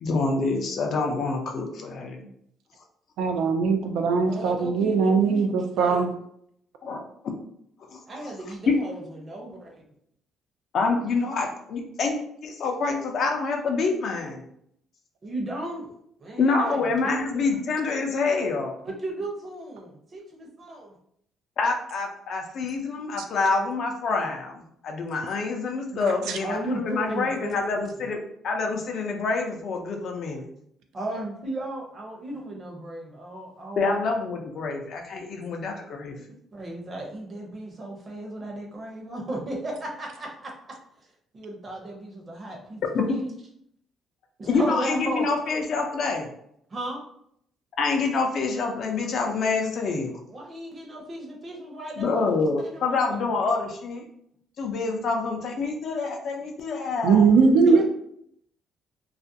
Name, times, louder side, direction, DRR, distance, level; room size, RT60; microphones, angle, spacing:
voice 1, 0.0-2.3 6.8-7.0 7.9-8.0 8.7-8.8 10.7-12.2 12.4-14.4 16.4-18.7 21.6-28.2 28.4-30.4 33.8-36.2 42.9-43.2 44.5-46.3 47.8-50.1 52.0-54.0 54.6-57.3, left 4 dB, 55° left, 3 dB, 0.4 m, -26 dB
voice 2, 3.2-6.1 25.9-26.4 57.0-57.8, right 5 dB, 85° right, 5 dB, 0.3 m, -20 dB
voice 3, 4.2-6.1 8.1-9.8 15.2-17.6 18.8-21.0 26.4-27.6 30.9-34.0 36.5-40.5 41.3-42.8 43.1-43.3 44.4-45.3 46.7-47.0 50.3-53.3 57.0-57.1 57.3-57.8, right 1 dB, 30° right, -1 dB, 0.7 m, -35 dB
2.4 x 2.1 x 2.6 m, 0.71 s
cardioid pair, 130°, 0 cm